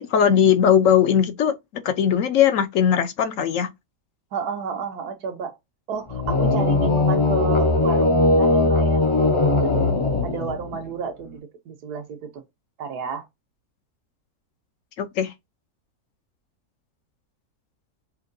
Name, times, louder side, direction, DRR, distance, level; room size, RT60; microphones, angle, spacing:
voice 1, 0.0-3.7 15.0-15.3, left 8 dB, 65° left, 0.9 m, -19 dB
voice 2, 4.3-5.6 5.9-9.1 9.5-9.9 10.2-12.4 12.8-13.2, right 6 dB, 85° right, 1.3 m, -31 dB
sound 1, 6.1-10.8, left 2 dB, 40° left, 0.4 m, -20 dB
5.4 x 2.2 x 2.5 m
omnidirectional pair, 1.6 m